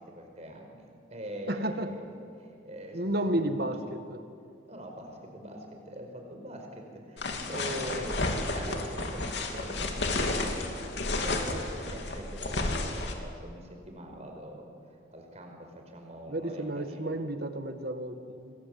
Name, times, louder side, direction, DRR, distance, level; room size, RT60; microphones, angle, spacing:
voice 1, 0.1-2.1 2.4-3.7 4.7-14.7 15.1-17.2, equal, 35° right, 3 dB, 5.0 m, -43 dB
voice 2, 1.5-1.9 2.9-4.2 16.3-18.5, right 1 dB, 55° right, 8 dB, 1.9 m, -32 dB
sound 1, 7.2-13.1, left 2 dB, 65° left, 3.1 m, -32 dB
27.0 x 22.5 x 8.6 m, 2.5 s
head